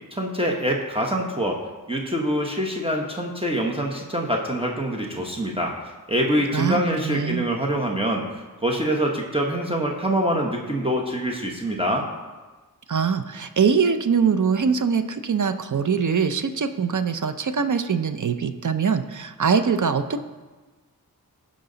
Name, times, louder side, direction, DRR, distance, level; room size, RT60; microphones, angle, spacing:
voice 1, 0.1-1.6 1.9-12.0, equal, 15° right, -1 dB, 1.0 m, -25 dB
voice 2, 6.5-7.5 12.9-20.2, right 6 dB, 55° right, 9 dB, 0.6 m, -23 dB
15.0 x 5.3 x 3.9 m, 1.3 s
wide cardioid pair, 65°, 37 cm